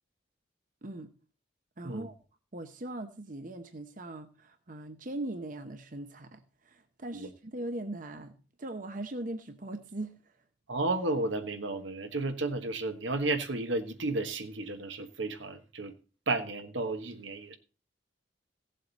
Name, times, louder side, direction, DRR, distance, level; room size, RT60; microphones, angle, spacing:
voice 1, 0.8-1.1 1.8-2.1 2.5-10.3, right 1 dB, 45° right, 0.9 m, -40 dB
voice 2, 10.7-15.9 16.3-17.6, right 2 dB, 70° right, 1.3 m, -32 dB
16.5 x 7.6 x 4.1 m
head